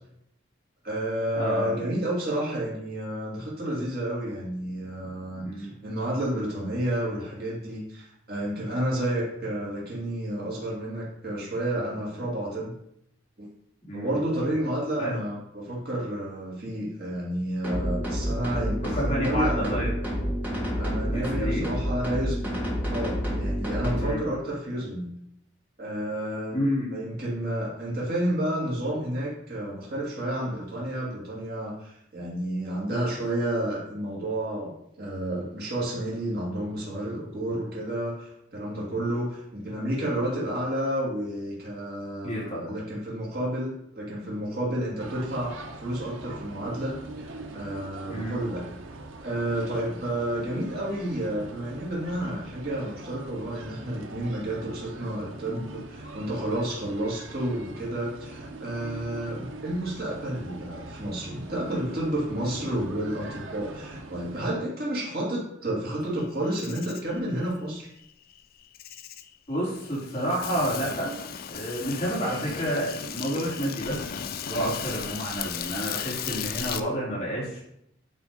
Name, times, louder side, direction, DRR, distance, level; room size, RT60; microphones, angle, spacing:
voice 1, 0.8-12.7 13.4-13.5 13.9-19.8 20.7-22.6 22.9-25.1 25.8-26.6 26.9-34.7 35.0-48.6 49.2-67.9, right 1 dB, 50° right, -5 dB, 2.4 m, -30 dB
voice 2, 1.3-1.7 5.4-5.7 13.9-14.2 15.0-15.1 18.9-19.9 21.1-21.7 24.0-24.2 26.5-26.9 42.2-42.7 48.1-48.4 55.5-55.7 69.5-71.1 71.5-74.1 74.4-77.6, equal, 30° left, -6 dB, 3.1 m, -29 dB
sound 1, 17.6-24.1, equal, 10° right, 1.9 m, -29 dB
sound 2, 45.0-64.5, right 2 dB, 90° right, 0.8 m, -42 dB
Insect, 66.2-76.8, left 8 dB, 50° left, 0.5 m, -36 dB
8.6 x 3.5 x 5.1 m, 0.76 s
head